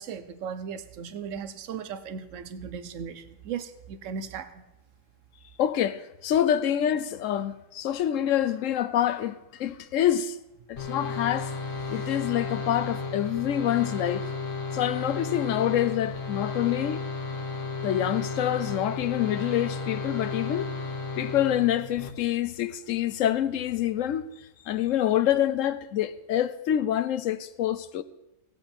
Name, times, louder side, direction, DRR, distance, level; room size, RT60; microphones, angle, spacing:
voice 1, 0.0-4.6, right 7 dB, 80° right, 1.2 m, -37 dB
voice 2, 5.6-10.3 10.7-11.5 11.9-14.2 14.7-17.0 17.8-20.7 21.2-24.2 24.7-28.0, left 11 dB, 85° left, 1.0 m, -26 dB
sound 1, 10.8-22.1, left 3 dB, 45° left, 1.4 m, -33 dB
18.0 x 7.7 x 4.4 m
omnidirectional pair, 1.3 m